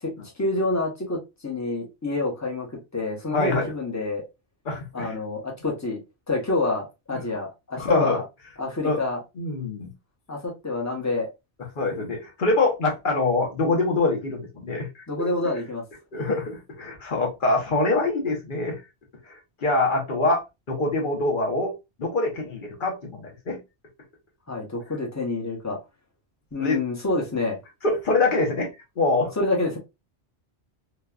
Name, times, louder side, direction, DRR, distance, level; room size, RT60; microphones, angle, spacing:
voice 1, 0.0-4.2 4.9-6.0 6.3-8.2 8.6-9.2 10.3-11.3 15.1-15.8 24.5-25.8 26.5-27.6 29.4-29.8, left 2 dB, 15° left, 0.8 m, -27 dB
voice 2, 3.3-3.7 4.7-5.2 7.8-8.2 8.8-9.0 9.4-9.9 11.8-15.3 16.1-18.8 19.6-21.7 22.0-23.6 26.6-26.8 27.8-28.7 29.0-29.3, left 2 dB, 50° left, 1.0 m, -24 dB
3.1 x 2.3 x 2.3 m
omnidirectional pair, 1.1 m